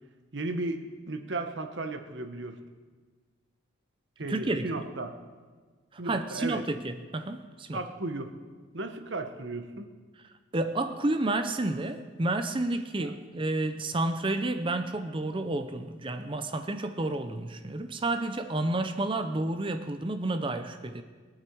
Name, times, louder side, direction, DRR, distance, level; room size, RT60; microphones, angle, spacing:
voice 1, 0.3-2.6 4.2-5.1 6.0-6.6 7.7-8.3 8.7-9.9 13.0-13.1, right 2 dB, 60° right, 7 dB, 1.0 m, -35 dB
voice 2, 4.3-4.8 5.9-7.8 10.5-21.0, right 2 dB, 25° right, 9 dB, 0.5 m, -30 dB
21.0 x 8.6 x 4.6 m, 1.4 s
head